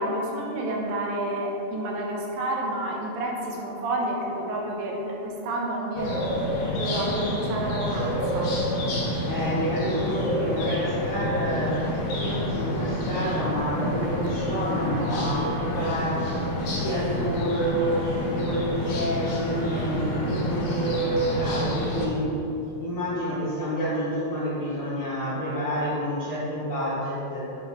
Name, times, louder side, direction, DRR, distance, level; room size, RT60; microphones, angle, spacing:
voice 1, 0.0-6.3 6.7-8.5, right 1 dB, 75° right, -2 dB, 2.6 m, -29 dB
sound 1, 6.0-22.1, equal, 60° left, 2.9 m, -28 dB
voice 2, 9.2-16.3 16.7-22.3 22.8-27.6, equal, 75° left, -10 dB, 1.2 m, -28 dB
7.4 x 4.7 x 5.6 m, 3.0 s
omnidirectional pair, 4.4 m